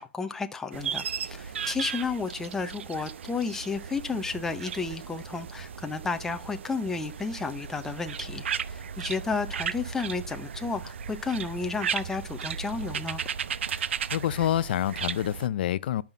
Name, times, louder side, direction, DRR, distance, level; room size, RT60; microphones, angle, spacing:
voice 1, 0.0-13.2, left 4 dB, 5° left, 0.6 m, -32 dB
sound 1, 0.7-15.5, right 7 dB, 80° right, 0.8 m, -35 dB
voice 2, 13.7-16.0, left 12 dB, 55° left, 0.6 m, -28 dB
11.0 x 5.7 x 5.3 m
hypercardioid pair, 160°, 6 cm